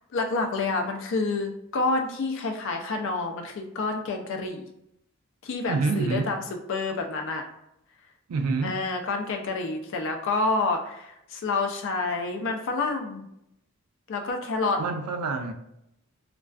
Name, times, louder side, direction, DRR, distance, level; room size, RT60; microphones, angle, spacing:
voice 1, 0.1-4.6 5.4-6.4 6.7-7.4 8.6-13.2 14.1-14.8, left 3 dB, 55° left, 3 dB, 0.4 m, -28 dB
voice 2, 5.7-6.3 8.3-8.8 14.8-15.5, right 4 dB, 85° right, 6 dB, 0.3 m, -27 dB
2.3 x 2.2 x 2.3 m, 0.80 s
head